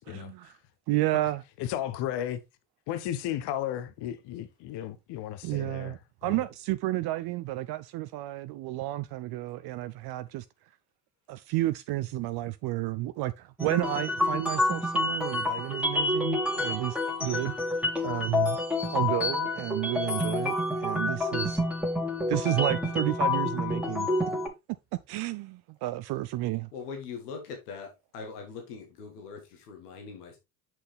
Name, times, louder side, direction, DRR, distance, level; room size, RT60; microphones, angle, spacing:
voice 1, 0.1-0.6 0.9-1.4 5.4-10.4 11.3-17.5 18.0-18.6 18.9-21.6 22.3-24.1 25.1-26.7, right 17 dB, 60° right, 0.5 m, -31 dB
voice 2, 1.7-2.4 2.9-5.9, left 11 dB, 65° left, 1.0 m, -34 dB
sound 1, 13.6-24.5, left 2 dB, 5° right, 2.0 m, -28 dB
voice 3, 26.7-30.4, left 5 dB, 85° left, 1.6 m, -41 dB
6.1 x 5.7 x 3.3 m
hypercardioid pair, 60°, 45 cm